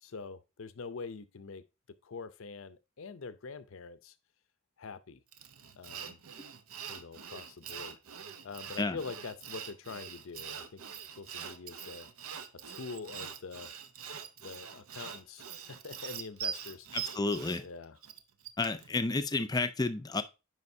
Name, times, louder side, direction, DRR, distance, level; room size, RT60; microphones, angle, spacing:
voice 1, 0.0-1.6 2.0-4.2 4.8-5.2 5.8-6.2 6.9-8.0 8.4-10.8 11.1-12.1 12.7-13.7 14.4-16.9 17.6-18.0, left 4 dB, 70° left, 0.5 m, -44 dB
Sawing, 5.3-18.9, right 7 dB, 80° right, 0.7 m, -43 dB
voice 2, 16.9-17.6 18.6-20.2, left 3 dB, 20° left, 0.4 m, -31 dB
9.6 x 5.1 x 2.6 m
head